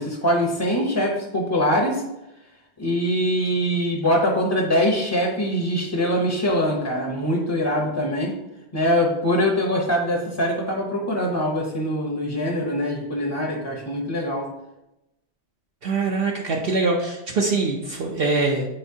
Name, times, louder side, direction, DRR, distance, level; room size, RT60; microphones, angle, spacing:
voice 1, 0.0-2.0 2.8-8.3 8.7-14.5, equal, 25° left, -1 dB, 0.8 m, -23 dB
voice 2, 15.8-18.7, right 3 dB, 60° right, -1 dB, 0.9 m, -23 dB
8.8 x 4.4 x 2.7 m, 0.93 s
omnidirectional pair, 1.1 m